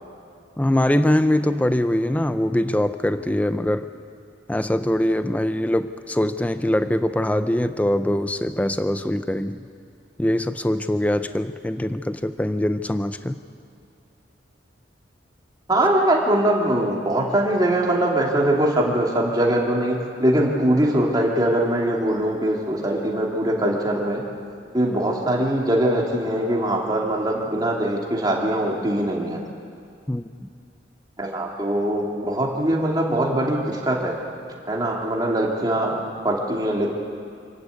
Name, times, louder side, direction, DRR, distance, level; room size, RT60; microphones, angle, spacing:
voice 1, 0.6-3.9 4.5-9.6 10.2-13.4 30.1-30.5, left 1 dB, 10° left, 10 dB, 0.5 m, -23 dB
voice 2, 15.7-24.2 24.7-29.4 31.2-34.2 34.7-37.0, right 1 dB, 20° right, -2 dB, 2.7 m, -22 dB
27.0 x 12.0 x 8.4 m, 2.4 s
head